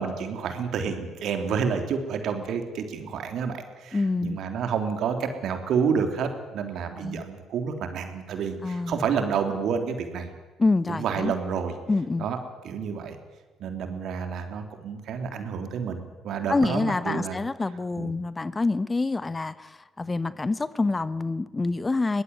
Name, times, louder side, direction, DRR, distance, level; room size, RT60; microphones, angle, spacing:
voice 1, 0.0-10.3 10.9-11.7 12.2-12.4 12.6-13.2 13.6-17.4 18.0-18.1, right 6 dB, 65° right, 6 dB, 3.4 m, -29 dB
voice 2, 3.9-4.4 7.0-7.2 8.6-9.0 10.6-11.3 11.9-12.3 16.5-22.2, left 3 dB, 25° left, 16 dB, 1.1 m, -26 dB
22.5 x 19.0 x 9.6 m, 1.3 s
hypercardioid pair, 50°, 0 cm